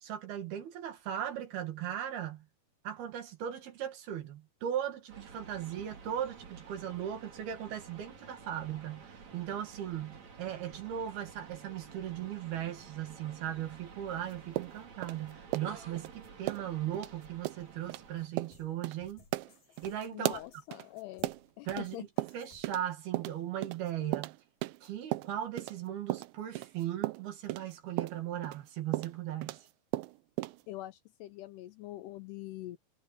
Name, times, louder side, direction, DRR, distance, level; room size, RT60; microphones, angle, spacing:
voice 1, 0.0-2.5 2.8-19.2 19.8-20.4 21.7-22.1 22.3-24.4 24.8-29.6, right 10 dB, 60° right, 3.7 m, -38 dB
sound 1, 5.1-18.3, right 5 dB, 40° right, 4.4 m, -52 dB
sound 2, 14.6-16.1 16.5-16.7 16.9-17.1 17.4-17.6 17.9-18.0 18.4-18.6 18.8-19.0 19.3-21.9 22.2-22.9 23.1-25.8 26.1-29.7 29.9-30.6, right 18 dB, 80° right, 2.9 m, -37 dB
sound 3, 18.2-22.9, left 4 dB, 50° left, 6.3 m, -62 dB
voice 2, 20.1-21.3 21.6-22.1 30.7-32.8, left 16 dB, 80° left, 2.5 m, -44 dB
omnidirectional pair, 5.3 m